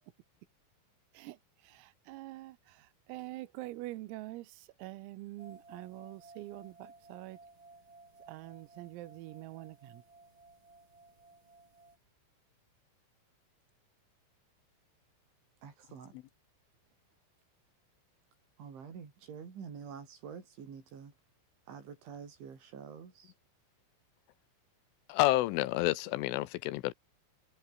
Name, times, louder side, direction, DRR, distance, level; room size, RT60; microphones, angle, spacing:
voice 1, 1.1-7.4 8.3-10.0, right 18 dB, 85° right, 3.8 m, -45 dB
sound 1, 5.4-12.0, right 3 dB, 25° right, 6.9 m, -57 dB
voice 2, 15.6-16.2 18.6-21.1 21.7-23.3, right 6 dB, 65° right, 7.2 m, -47 dB
voice 3, 25.1-26.9, left 17 dB, 80° left, 3.2 m, -29 dB
omnidirectional pair, 5.9 m